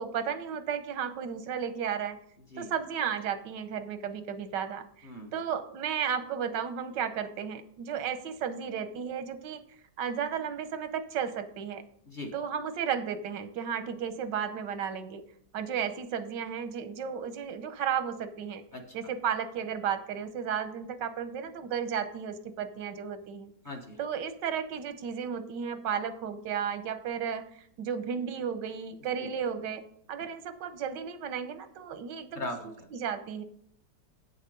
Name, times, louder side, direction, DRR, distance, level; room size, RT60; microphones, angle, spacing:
voice 1, 0.0-2.2 2.6-9.6 10.0-11.8 12.3-15.2 15.5-18.6 18.9-23.5 24.0-29.8 30.1-32.4 32.9-33.4, right 7 dB, 90° right, 10 dB, 1.5 m, -34 dB
voice 2, 5.0-5.3 12.1-12.3 18.7-18.8 23.6-24.0 29.2-29.3 32.3-32.9, left 1 dB, 35° left, 2 dB, 1.0 m, -39 dB
9.0 x 6.5 x 5.2 m, 0.66 s
omnidirectional pair, 1.8 m